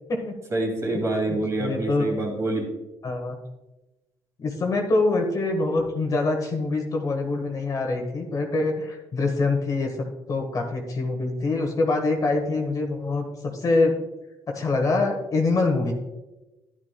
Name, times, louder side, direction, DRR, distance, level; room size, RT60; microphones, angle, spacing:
voice 1, 0.5-2.7, right 2 dB, 30° right, 1 dB, 2.7 m, -26 dB
voice 2, 1.3-2.1 3.0-3.3 4.4-10.0 10.3-14.0 14.5-15.9, left 3 dB, 40° left, 2 dB, 1.5 m, -25 dB
11.0 x 11.0 x 2.2 m, 1.1 s
cardioid pair, 95°, 9 cm